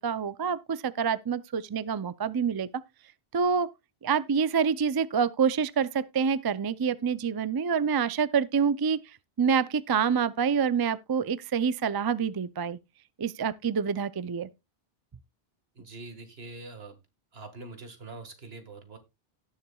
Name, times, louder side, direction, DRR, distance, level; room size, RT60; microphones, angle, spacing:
voice 1, 0.0-2.7 3.3-3.7 4.0-9.0 9.4-12.8 13.2-14.5, right 6 dB, 40° right, 0.3 m, -27 dB
voice 2, 15.8-17.0 17.3-19.0, right 3 dB, 75° right, 1.9 m, -44 dB
17.5 x 6.9 x 2.3 m
omnidirectional pair, 1.0 m